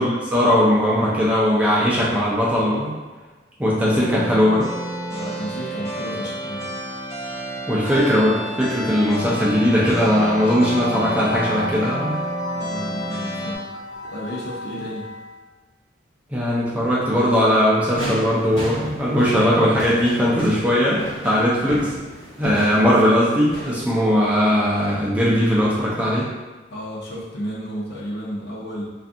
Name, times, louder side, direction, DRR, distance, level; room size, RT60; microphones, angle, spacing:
voice 1, 0.0-2.9 3.6-4.7 7.7-12.2 16.3-22.0 22.4-26.3, equal, 5° right, -6 dB, 0.4 m, -19 dB
sound 1, 4.0-13.6, right 1 dB, 20° left, 0.7 m, -31 dB
voice 2, 5.1-6.7 12.5-13.7 14.1-15.1 26.7-28.8, equal, 55° left, -6 dB, 0.7 m, -32 dB
sound 2, 6.0-15.4, left 1 dB, 60° right, 0.6 m, -34 dB
sound 3, 18.0-23.8, right 1 dB, 80° left, 0.9 m, -33 dB
2.5 x 2.4 x 2.5 m, 1.3 s
head